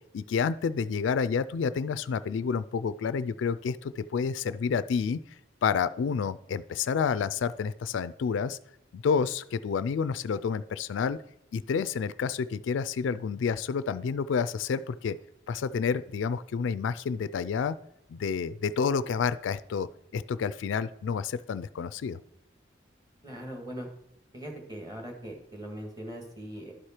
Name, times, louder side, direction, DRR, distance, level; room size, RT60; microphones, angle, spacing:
voice 1, 0.1-5.2 5.6-8.6 8.9-11.2 11.5-15.2 15.5-17.8 18.1-19.9 20.1-22.2, left 6 dB, 80° left, 15 dB, 0.3 m, -29 dB
voice 2, 23.2-23.9 24.3-26.7, equal, 20° right, 2 dB, 1.7 m, -40 dB
11.5 x 4.9 x 4.4 m, 0.83 s
head